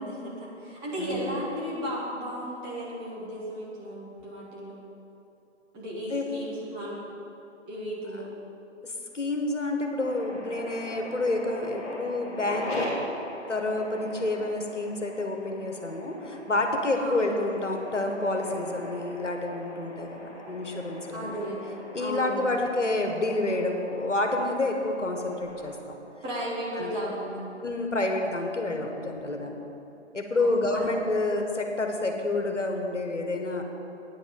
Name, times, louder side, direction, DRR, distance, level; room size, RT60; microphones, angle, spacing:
voice 1, 0.0-4.8 5.7-7.0 7.7-8.3 17.0-17.4 21.1-22.5 26.2-27.4 30.4-30.9, equal, 15° right, -6 dB, 1.6 m, -35 dB
voice 2, 1.0-1.4 6.1-6.3 8.1-8.2 8.8-12.9 13.5-20.2 20.5-21.4 21.9-26.0 26.7-27.0 27.6-29.6 30.1-33.6, left 2 dB, 80° left, 3 dB, 1.6 m, -29 dB
sound 1, 10.0-25.7, left 1 dB, 10° left, 2.2 m, -41 dB
9.6 x 9.2 x 5.4 m, 3.0 s
figure-of-eight pair, 140°, 36 cm